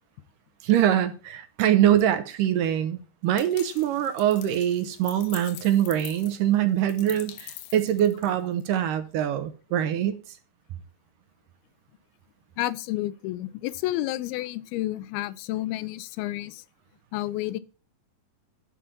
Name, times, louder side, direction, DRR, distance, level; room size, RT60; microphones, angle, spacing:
voice 1, 0.6-10.4, right 11 dB, 75° right, 2.1 m, -24 dB
sound 1, 3.4-8.6, left 13 dB, 75° left, 2.1 m, -44 dB
voice 2, 12.6-16.6 17.1-17.6, left 16 dB, 90° left, 2.5 m, -30 dB
11.0 x 4.2 x 7.4 m
omnidirectional pair, 4.3 m